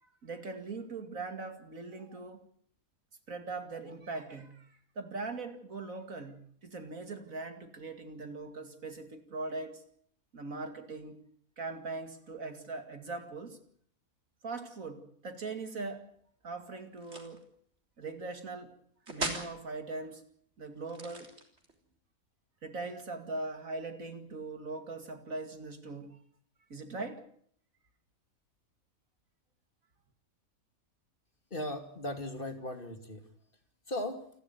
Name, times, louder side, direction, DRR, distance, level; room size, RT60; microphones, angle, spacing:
voice 1, 0.0-2.4 3.3-9.8 10.3-11.2 11.6-13.6 14.4-16.1 16.4-17.5 18.0-18.7 19.1-20.2 20.6-21.3 22.6-26.2 26.7-27.3, right 3 dB, 70° right, 2.9 m, -41 dB
sound 1, 17.0-17.4 19.1-19.5 20.8-21.7, right 2 dB, 50° right, 3.9 m, -38 dB
voice 2, 31.5-33.2 33.9-34.3, left 1 dB, 40° left, 2.7 m, -37 dB
28.5 x 12.5 x 9.6 m
omnidirectional pair, 1.5 m